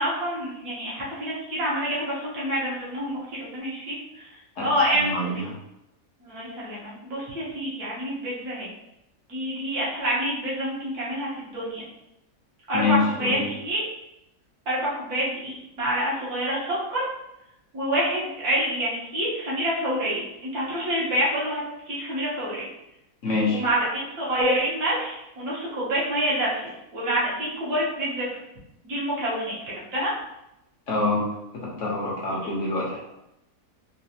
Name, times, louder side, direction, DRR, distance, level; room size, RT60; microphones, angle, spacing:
voice 1, 0.0-4.3 4.6-5.3 6.2-8.7 9.3-11.8 12.7-13.8 14.7-17.0 17.7-21.6 21.9-22.6 23.5-28.2 28.8-29.5 29.9-30.1, equal, 70° right, -7 dB, 1.7 m, -27 dB
voice 2, 4.6-5.5 12.7-13.5 23.2-23.6 30.9-31.2 31.5-33.0, left 3 dB, 60° left, -4 dB, 1.0 m, -26 dB
3.9 x 2.4 x 2.7 m, 0.87 s
omnidirectional pair, 1.6 m